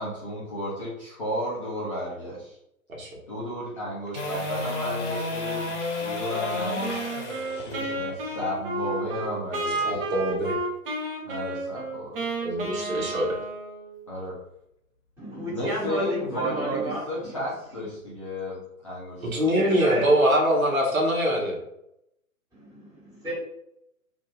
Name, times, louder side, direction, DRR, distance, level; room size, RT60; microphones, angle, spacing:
voice 1, 0.0-2.6 3.3-5.7 6.0-7.1 7.5-10.0 11.2-12.2 14.1-14.3 15.5-18.6 18.8-19.5, equal, 25° left, -7 dB, 0.4 m, -33 dB
sound 1, 4.1-10.3 16.8-16.9, left 2 dB, 55° left, 0.8 m, -32 dB
Wind instrument woodwind instrument, 6.3-14.0, right 2 dB, 40° right, 0.8 m, -32 dB
voice 2, 9.8-10.6 12.4-13.4 19.2-21.6, equal, 70° right, -2 dB, 1.1 m, -23 dB
voice 3, 15.2-17.3 19.5-20.1 22.5-23.3, right 1 dB, 5° right, -10 dB, 1.3 m, -32 dB
2.7 x 2.5 x 2.3 m, 0.80 s
figure-of-eight pair, 120°, 43 cm